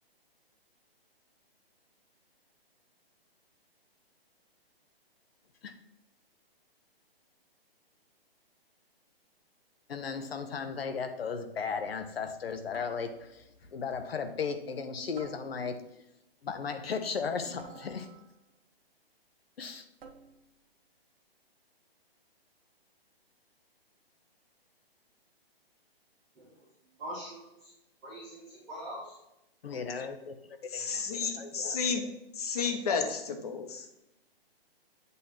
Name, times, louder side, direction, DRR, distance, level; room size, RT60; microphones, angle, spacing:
voice 1, 9.9-15.8 16.4-18.1 19.6-19.8 29.6-30.4 30.7-31.0 31.4-31.8, left 5 dB, 70° left, 8 dB, 1.0 m, -36 dB
sound 1, 10.9-11.3 12.7-13.5 15.2-16.0 17.6-18.5 20.0-20.6, right 4 dB, 70° right, 1.3 m, -53 dB
voice 2, 27.0-27.7 28.0-29.2, equal, 5° right, -13 dB, 0.5 m, -43 dB
voice 3, 30.7-33.9, left 5 dB, 40° left, 5 dB, 1.0 m, -32 dB
8.2 x 3.2 x 5.7 m, 0.87 s
hypercardioid pair, 170°, 31 cm